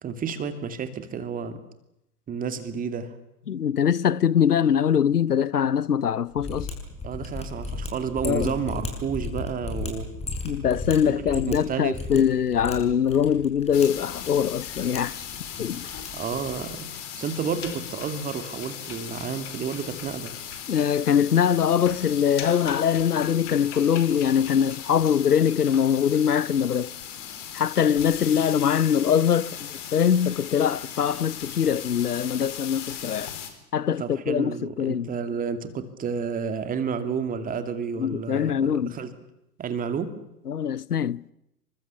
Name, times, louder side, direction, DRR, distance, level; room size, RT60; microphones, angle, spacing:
voice 1, 0.0-1.6 2.3-3.1 7.0-10.1 11.0-12.3 15.8-20.3 34.0-39.1 39.6-40.1, right 6 dB, 15° right, 2.6 m, -31 dB
voice 2, 3.5-6.7 8.2-8.5 10.4-15.2 15.6-15.9 20.7-26.9 27.5-33.3 33.7-35.1 38.0-38.9 40.5-41.2, left 8 dB, 75° left, 0.9 m, -23 dB
Mechanisms, 6.3-16.8, left 3 dB, 15° left, 6.3 m, -36 dB
sound 1, 13.7-33.5, left 9 dB, 50° left, 4.9 m, -38 dB
28.5 x 24.5 x 7.1 m
figure-of-eight pair, 100°, 47 cm